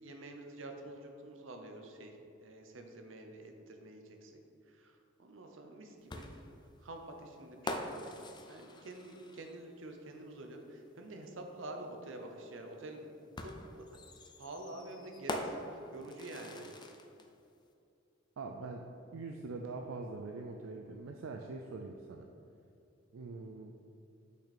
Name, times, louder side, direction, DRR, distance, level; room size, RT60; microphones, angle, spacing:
voice 1, 0.0-2.1 2.4-4.3 5.2-6.2 6.8-13.1 13.4-14.0 14.4-15.6 15.9-16.7, right 2 dB, 70° right, 4 dB, 0.8 m, -47 dB
sound 1, 6.1-9.7 11.2-11.3 13.4-17.3, left 1 dB, 20° left, 0.4 m, -44 dB
voice 2, 18.4-18.9 19.1-22.3 23.1-23.8, right 3 dB, 85° right, 3 dB, 0.4 m, -43 dB
6.1 x 5.8 x 4.2 m, 2.6 s
head